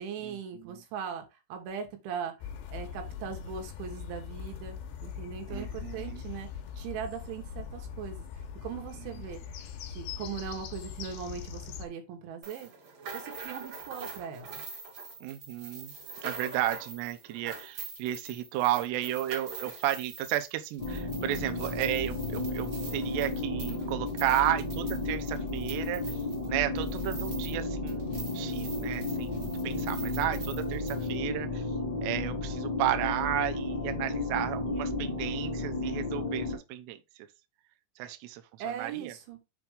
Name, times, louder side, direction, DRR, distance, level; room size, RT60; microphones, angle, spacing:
voice 1, 0.0-2.3 2.7-4.8 5.0-6.5 6.8-8.3 8.6-9.4 9.9-12.7 13.1-14.6 38.6-39.4, right 7 dB, 70° right, 3.6 m, -39 dB
sound 1, 2.4-11.9, left 8 dB, 70° left, 2.8 m, -41 dB
voice 2, 5.5-6.2 15.2-15.9 16.2-26.0 26.5-31.6 32.0-37.0 38.0-38.4 38.7-39.1, right 13 dB, 85° right, 2.4 m, -33 dB
sound 2, 12.4-27.6 27.9-31.1, right 5 dB, 50° right, 3.3 m, -44 dB
sound 3, 20.8-36.6, left 2 dB, 10° left, 1.7 m, -33 dB
7.6 x 3.5 x 4.8 m
omnidirectional pair, 5.9 m